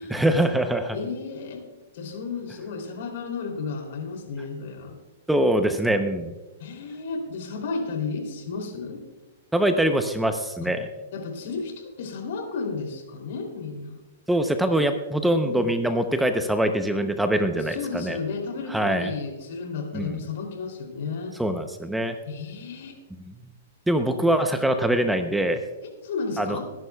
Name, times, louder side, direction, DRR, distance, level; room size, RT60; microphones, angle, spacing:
voice 1, 0.1-1.0 5.3-6.3 9.5-10.9 14.3-18.2 18.7-19.1 19.9-20.2 21.4-22.2 23.2-23.3 23.9-25.6 26.4-26.6, right 1 dB, 5° right, 7 dB, 0.7 m, -23 dB
voice 2, 0.9-1.6 1.9-5.0 6.6-9.0 10.6-10.7 11.1-14.0 15.4-15.7 17.5-21.3 22.3-23.0 26.0-26.7, left 4 dB, 65° left, 4 dB, 3.0 m, -33 dB
22.0 x 11.0 x 2.3 m, 1.2 s
hypercardioid pair, 130°, 0 cm